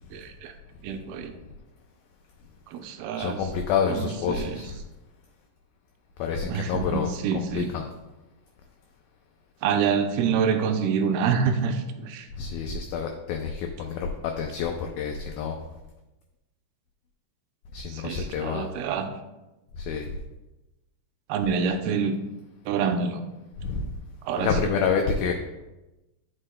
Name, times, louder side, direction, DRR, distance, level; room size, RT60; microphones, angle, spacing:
voice 1, 0.1-0.5 0.8-1.3 2.7-3.4 3.9-4.6 6.4-7.7 9.6-12.3 17.9-19.1 21.3-22.2 22.7-23.2 24.3-24.5, right 6 dB, 85° right, 6 dB, 2.2 m, -27 dB
voice 2, 3.2-4.8 6.2-7.9 12.4-15.6 17.7-18.7 19.8-20.1 23.6-23.9 24.4-25.3, left 6 dB, 85° left, 3 dB, 2.1 m, -28 dB
13.0 x 5.3 x 2.2 m, 1.0 s
omnidirectional pair, 4.8 m